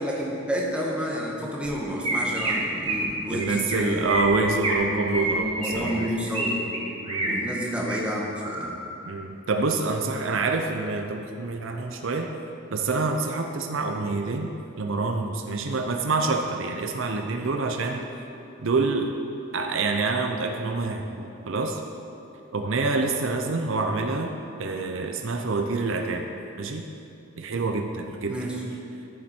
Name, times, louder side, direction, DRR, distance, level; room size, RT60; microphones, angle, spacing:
voice 1, 0.0-4.1 4.9-6.7 7.2-8.8 28.3-28.6, equal, 5° right, -3 dB, 1.3 m, -30 dB
Chirp tweet, 1.6-1.7 2.0-2.5 2.8-3.1 3.4-3.8 4.1-4.8 5.1-6.5 6.7-7.3 7.7-8.0 8.4-8.8, right 2 dB, 25° right, 1.7 m, -28 dB
voice 2, 3.3-6.1 7.1-7.4 9.0-12.3 12.7-18.0 18.6-19.1 19.5-21.8 22.5-26.3 26.6-26.9 27.4-28.6, right 3 dB, 60° right, 4 dB, 0.6 m, -27 dB
13.5 x 7.7 x 4.4 m, 2.7 s
head